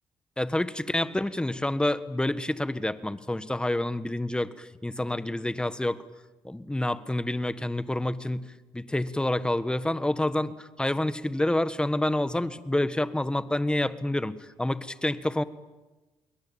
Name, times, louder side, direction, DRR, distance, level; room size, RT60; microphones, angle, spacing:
voice 1, 0.4-6.0 6.4-15.4, left 1 dB, 10° left, 14 dB, 1.4 m, -28 dB
28.5 x 22.0 x 8.8 m, 1.1 s
cardioid pair, 85°, 9 cm